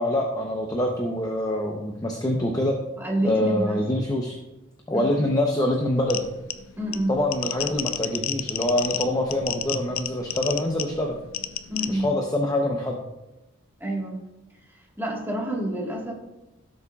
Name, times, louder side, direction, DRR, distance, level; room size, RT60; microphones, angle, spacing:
voice 1, 0.0-2.8 3.2-4.4 4.9-6.2 7.1-11.2 11.9-13.0, left 1 dB, 15° left, 1 dB, 0.7 m, -25 dB
voice 2, 3.0-3.8 4.9-5.1 6.8-7.2 11.7-12.1 13.8-14.2 15.0-16.1, right 1 dB, 10° right, -2 dB, 1.6 m, -27 dB
sound 1, 6.0-12.1, left 11 dB, 75° left, 0.5 m, -32 dB
16.5 x 6.8 x 2.4 m, 1.0 s
head